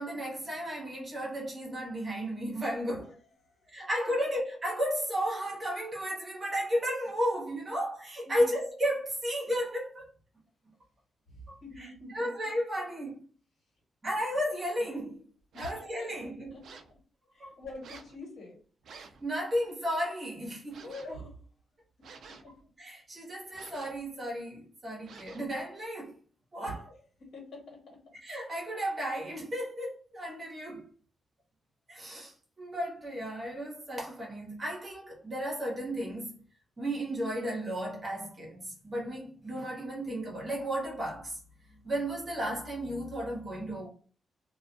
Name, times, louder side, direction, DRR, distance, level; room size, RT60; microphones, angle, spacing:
voice 1, 0.0-3.2 3.7-10.1 11.5-13.2 14.0-15.2 15.6-16.5 17.4-17.5 19.2-20.8 22.8-26.1 26.5-26.9 28.2-30.9 31.9-36.4 36.8-43.9, equal, 25° right, 1.0 m, -34 dB
voice 2, 11.3-12.3 15.5-15.8 16.5-16.7 17.3-18.6 20.8-21.4 22.3-22.6 26.6-28.0, left 1 dB, 60° left, 1.4 m, -45 dB
sound 1, 15.5-15.9 16.6-17.0 17.8-18.2 18.8-19.2 20.7-21.2 22.0-22.6 23.5-24.1 25.0-25.6, right 5 dB, 70° right, 0.4 m, -50 dB
2.3 x 2.3 x 2.4 m
wide cardioid pair, 170°, 0 cm